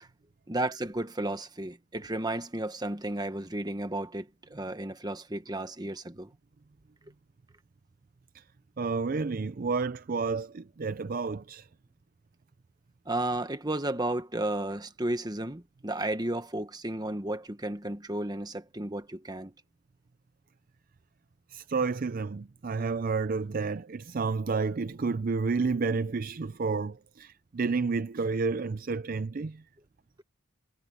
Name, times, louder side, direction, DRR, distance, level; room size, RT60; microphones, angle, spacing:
voice 1, 0.5-6.3 13.0-19.5, right 1 dB, 20° right, 1.2 m, -33 dB
voice 2, 8.8-11.7 21.5-29.6, right 4 dB, 40° right, 0.4 m, -30 dB
head